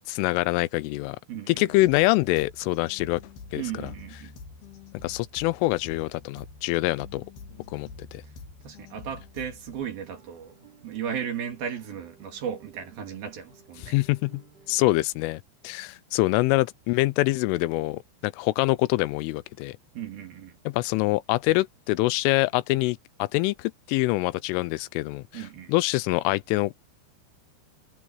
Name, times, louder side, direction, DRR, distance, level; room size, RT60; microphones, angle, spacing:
voice 1, 0.1-1.2 1.5-3.2 3.5-3.9 5.0-7.2 7.7-8.2 13.8-14.4 14.7-19.8 20.7-26.7, left 20 dB, 90° left, 3.2 m, -25 dB
voice 2, 1.3-1.7 3.6-4.4 8.6-10.6 10.8-13.9 19.9-20.6 25.3-25.7, right 8 dB, 55° right, 3.9 m, -35 dB
sound 1, 1.9-9.9, left 4 dB, 55° left, 4.8 m, -46 dB
Guitar, 9.9-15.0, right 5 dB, 20° right, 6.0 m, -56 dB
omnidirectional pair, 5.6 m